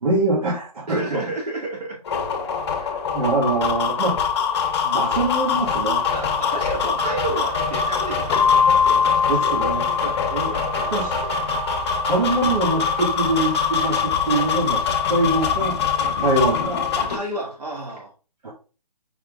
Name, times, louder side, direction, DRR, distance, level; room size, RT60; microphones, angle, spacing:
voice 1, 0.0-1.2 2.8-4.2 4.8-6.0 9.3-9.9 10.3-10.6 10.9-11.3 12.0-15.7 16.2-16.9 18.4-18.5, right 2 dB, 65° right, -4 dB, 1.5 m, -24 dB
voice 2, 0.9-2.2 3.1-3.2 6.1-9.3 9.8-11.0 16.0-16.2 16.9-18.1, right 2 dB, 80° right, -1 dB, 2.3 m, -32 dB
sound 1, 2.0-17.2, left 6 dB, 40° left, 1.0 m, -24 dB
Keyboard (musical), 8.3-11.0, left 6 dB, 65° left, 0.5 m, -21 dB
5.4 x 3.6 x 2.4 m, 0.35 s
hypercardioid pair, 165°, 20 cm